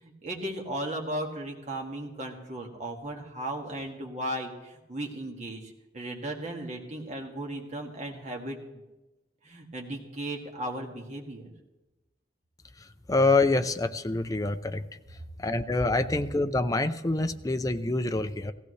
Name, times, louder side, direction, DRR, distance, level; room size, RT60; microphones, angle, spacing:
voice 1, 0.0-8.8 9.4-11.5, right 1 dB, 40° right, 1 dB, 2.1 m, -36 dB
voice 2, 13.1-14.8 15.4-18.5, left 2 dB, 20° left, 8 dB, 0.6 m, -26 dB
16.5 x 16.5 x 3.3 m, 1.1 s
head